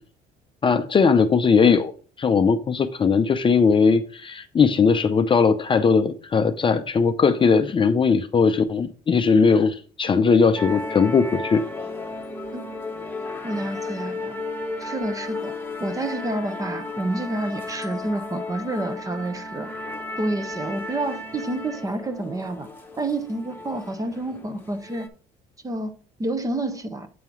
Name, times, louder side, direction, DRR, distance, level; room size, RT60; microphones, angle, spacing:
voice 1, 0.6-1.9 2.2-11.6, left 5 dB, 30° left, 0.6 m, -19 dB
sound 1, 10.6-25.1, left 2 dB, 10° left, 1.3 m, -34 dB
voice 2, 13.4-14.4 14.8-15.5 15.8-19.7 20.2-22.7 23.0-25.1 25.6-25.9 26.2-27.1, right 2 dB, 20° right, 1.0 m, -29 dB
8.5 x 3.7 x 4.6 m
cardioid pair, 110°, 17 cm